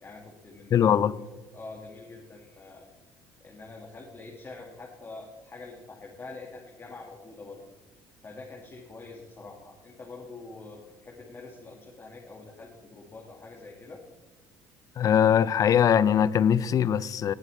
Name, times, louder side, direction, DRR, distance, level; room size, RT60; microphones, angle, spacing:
voice 1, 0.0-1.0 1.5-2.9 3.4-7.6 8.2-14.0, left 3 dB, 30° left, 2.0 m, -45 dB
voice 2, 0.7-1.2 15.0-17.3, left 9 dB, 45° left, 0.5 m, -21 dB
18.5 x 8.0 x 3.4 m
supercardioid pair, 90°, 8 cm